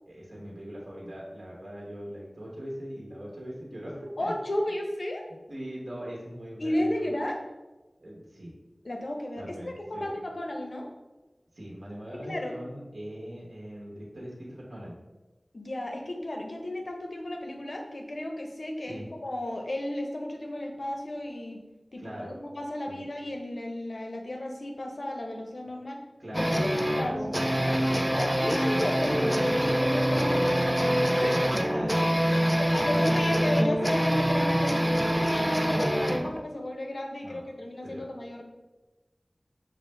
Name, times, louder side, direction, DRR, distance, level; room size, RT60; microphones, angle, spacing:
voice 1, 0.1-4.3 5.3-7.1 8.0-8.5 9.4-10.1 11.5-15.0 18.8-19.1 22.0-22.4 22.9-23.1 26.2-28.4 30.1-30.2 30.5-30.6 31.3-32.4 32.7-33.0 33.3-33.5 37.2-37.4 37.8-38.1, equal, 75° right, -5 dB, 1.1 m, -40 dB
voice 2, 4.2-5.2 6.6-7.4 8.8-10.9 12.1-12.6 15.5-21.6 21.9-26.0 26.3-27.3 28.1-31.3 32.3-38.4, left 1 dB, 80° left, 2 dB, 0.6 m, -33 dB
sound 1, 26.3-36.4, equal, 10° right, 0.4 m, -25 dB
6.1 x 2.5 x 3.3 m, 1.1 s
wide cardioid pair, 45°, 0 cm